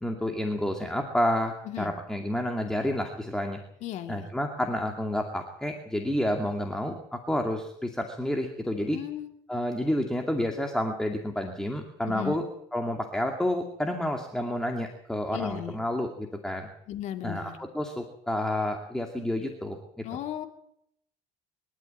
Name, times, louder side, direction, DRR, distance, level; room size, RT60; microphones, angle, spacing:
voice 1, 0.0-3.6 4.1-9.0 9.5-12.4 12.7-16.7 17.2-19.8 20.1-20.2, left 1 dB, 5° left, 3 dB, 2.5 m, -30 dB
voice 2, 3.8-4.3 8.9-9.3 12.1-12.4 15.3-15.8 16.9-17.6 20.0-20.5, left 11 dB, 60° left, 7 dB, 2.0 m, -35 dB
24.0 x 12.5 x 9.0 m, 0.71 s
cardioid pair, 120°, 14 cm